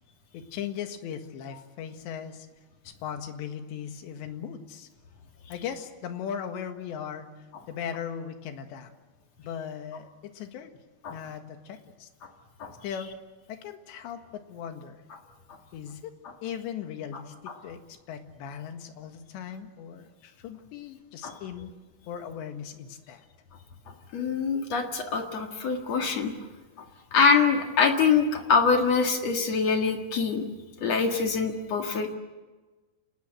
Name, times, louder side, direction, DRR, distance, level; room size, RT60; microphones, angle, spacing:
voice 1, 0.3-2.5 2.9-4.9 5.5-7.3 7.7-8.9 9.4-10.7 11.1-12.1 12.8-13.1 13.5-15.0 15.7-16.1 16.4-21.7 22.1-23.2, left 8 dB, 70° left, 6 dB, 3.8 m, -38 dB
voice 2, 24.1-26.3 27.1-30.4 30.8-32.1, left 5 dB, 50° left, 4 dB, 2.3 m, -24 dB
28.5 x 19.5 x 7.9 m, 1.3 s
omnidirectional pair, 5.3 m